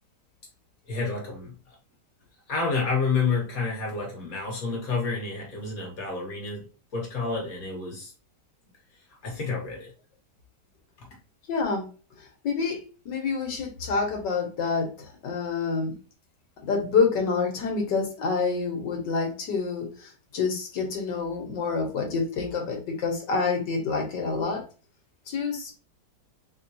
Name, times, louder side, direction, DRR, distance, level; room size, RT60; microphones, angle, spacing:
voice 1, 0.9-1.5 2.5-6.6 6.9-8.1 9.2-9.9, left 4 dB, 55° left, 1.7 m, -29 dB
voice 2, 11.5-11.9 12.2-15.9 16.6-24.6 25.3-25.7, left 4 dB, 80° left, 1.8 m, -27 dB
3.7 x 3.6 x 2.7 m
omnidirectional pair, 1.9 m